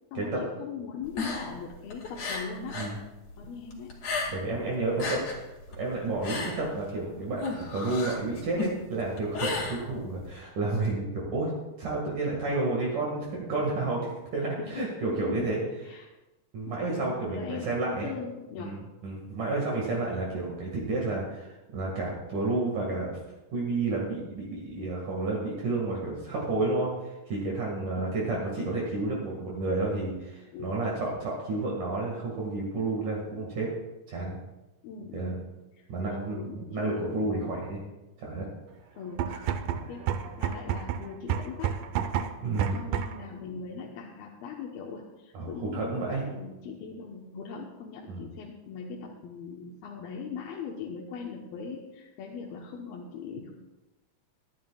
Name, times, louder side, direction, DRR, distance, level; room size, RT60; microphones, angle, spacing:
voice 1, 0.1-2.8 3.4-4.0 9.8-10.3 14.6-15.5 15.9-16.1 16.7-18.8 19.7-20.1 20.4-20.6 28.0-28.4 30.5-30.9 34.8-35.5 35.7-37.1 39.0-39.4 39.6-41.8 42.7-53.5, left 6 dB, 75° left, -2 dB, 2.8 m, -40 dB
sound 1, 1.0-3.0 3.3-4.6 4.9-10.3, left 3 dB, 50° left, 3.1 m, -34 dB
voice 2, 4.3-5.2 5.8-11.5 11.8-15.6 16.5-18.1 18.6-23.2 23.5-33.7 34.1-34.4 35.1-35.4 35.9-37.8 38.2-38.5 39.3-39.4 42.4-42.8 45.3-46.2 48.1-48.2, right 2 dB, 60° right, -3 dB, 3.2 m, -31 dB
sound 2, 39.1-43.3, right 9 dB, 75° right, 2.1 m, -30 dB
23.0 x 10.5 x 2.3 m, 1.0 s
omnidirectional pair, 4.4 m